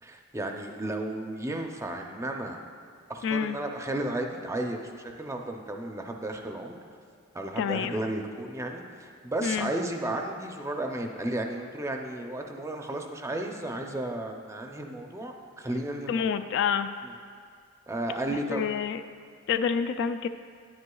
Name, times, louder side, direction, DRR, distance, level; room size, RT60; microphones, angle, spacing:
voice 1, 0.0-2.6 3.1-6.8 7.3-16.3 17.0-17.1 17.9-18.7, right 1 dB, 15° right, 3 dB, 0.5 m, -33 dB
voice 2, 3.2-3.6 7.6-8.0 9.4-9.7 16.1-16.9 18.5-19.0 19.5-20.3, left 7 dB, 60° left, 10 dB, 0.3 m, -27 dB
10.0 x 9.6 x 2.3 m, 2.2 s
head